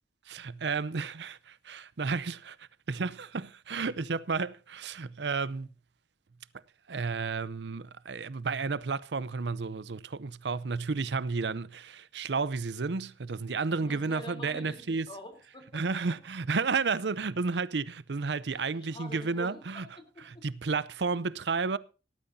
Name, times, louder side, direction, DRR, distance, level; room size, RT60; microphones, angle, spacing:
voice 1, 0.3-5.7 6.9-15.1 15.7-19.8 20.4-21.8, right 4 dB, 70° right, 0.6 m, -32 dB
voice 2, 13.8-16.2 18.5-20.5, equal, 30° left, 3.5 m, -47 dB
18.0 x 12.5 x 2.7 m
head